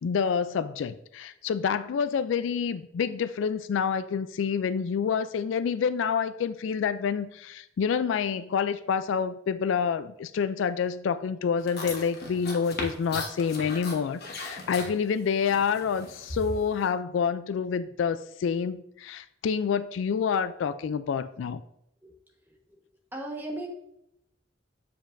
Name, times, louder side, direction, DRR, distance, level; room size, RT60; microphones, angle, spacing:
voice 1, 0.0-21.6, left 6 dB, 70° left, 14 dB, 0.3 m, -28 dB
sound 1, 11.6-16.9, left 2 dB, 50° left, 1.2 m, -38 dB
voice 2, 22.4-22.8 23.1-23.7, right 1 dB, 10° right, 0 dB, 1.2 m, -37 dB
7.6 x 7.0 x 2.6 m, 0.78 s
head